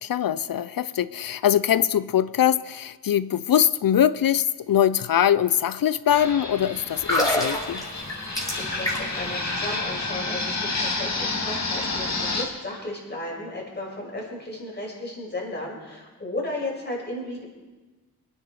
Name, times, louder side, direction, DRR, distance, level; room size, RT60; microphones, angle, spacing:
voice 1, 0.0-7.8, left 10 dB, 65° left, 16 dB, 0.5 m, -22 dB
Fixed-wing aircraft airplane, 6.1-12.5, left 3 dB, 45° left, 2.3 m, -30 dB
sound 1, 6.9-9.3 9.5-9.7, left 1 dB, 10° left, 5.4 m, -26 dB
voice 2, 8.0-17.4, left 1 dB, 30° left, -3 dB, 6.2 m, -34 dB
23.5 x 9.8 x 4.8 m, 1.3 s
wide cardioid pair, 85°, 37 cm